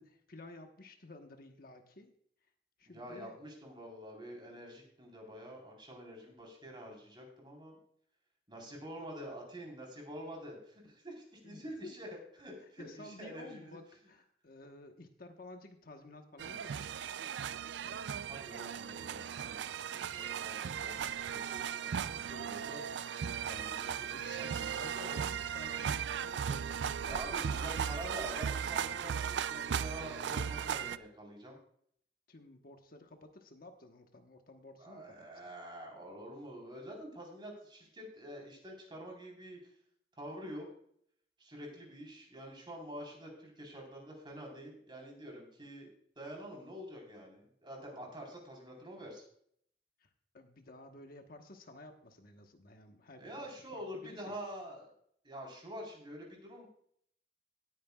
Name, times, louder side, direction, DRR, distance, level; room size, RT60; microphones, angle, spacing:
voice 1, 0.0-2.1 2.8-3.4 11.4-12.1 12.8-17.0 24.1-28.2 32.3-35.5 50.0-50.1 50.3-54.4, left 2 dB, 55° left, 5 dB, 1.2 m, -53 dB
voice 2, 2.9-7.8 8.5-12.1 12.4-13.8 18.2-22.8 23.5-25.2 27.0-31.6 34.8-39.7 40.2-40.7 41.4-45.9 46.2-49.3 53.2-54.9 55.2-56.7, equal, 30° right, 0 dB, 3.9 m, -47 dB
sound 1, 16.4-31.0, right 8 dB, 85° right, 0.4 m, -37 dB
18.5 x 9.4 x 2.4 m, 0.65 s
head